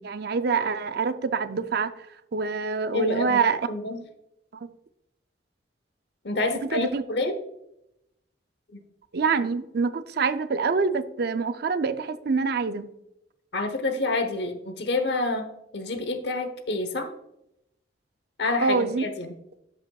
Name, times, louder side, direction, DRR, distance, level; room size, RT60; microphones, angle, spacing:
voice 1, 0.0-1.9 2.3-3.6 6.7-7.0 9.1-12.9 18.6-19.0, right 4 dB, 60° right, 11 dB, 0.5 m, -25 dB
voice 2, 2.9-3.4 3.7-4.0 6.2-7.3 8.7-8.8 13.5-17.1 18.4-19.3, left 2 dB, 65° left, 8 dB, 0.9 m, -28 dB
12.5 x 5.2 x 2.3 m, 0.84 s
head